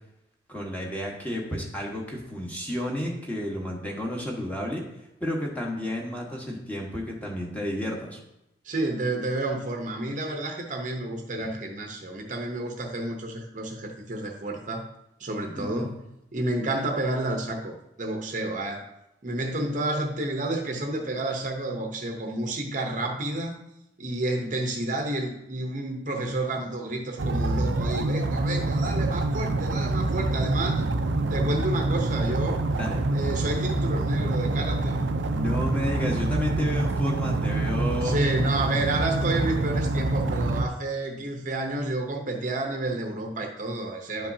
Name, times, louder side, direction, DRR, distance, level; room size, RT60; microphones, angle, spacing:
voice 1, 0.5-4.8 5.2-8.2 11.4-11.5 15.5-15.9 32.7-33.0 35.3-38.2 44.2-44.3, equal, 10° left, -2 dB, 1.3 m, -31 dB
voice 2, 8.6-14.9 15.2-16.0 16.3-18.9 19.2-23.6 24.0-30.8 31.3-32.6 33.1-35.0 38.0-44.3, right 2 dB, 45° right, 2 dB, 0.8 m, -30 dB
sound 1, 27.2-40.7, right 2 dB, 80° right, 0.5 m, -26 dB
10.5 x 5.6 x 2.8 m, 0.87 s
head